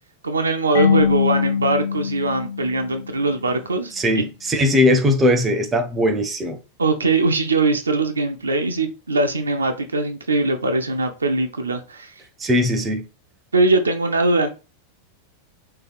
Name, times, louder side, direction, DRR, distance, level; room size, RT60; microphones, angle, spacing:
voice 1, 0.2-4.2 6.8-12.1 13.5-14.5, right 3 dB, 75° right, 0.4 m, -21 dB
Marimba xylophone / Wood, 0.7-3.5, left 7 dB, 65° left, 0.5 m, -23 dB
voice 2, 4.0-6.6 12.4-13.0, left 1 dB, 20° right, 0.5 m, -19 dB
3.3 x 2.7 x 2.3 m
figure-of-eight pair, 90°, 0 cm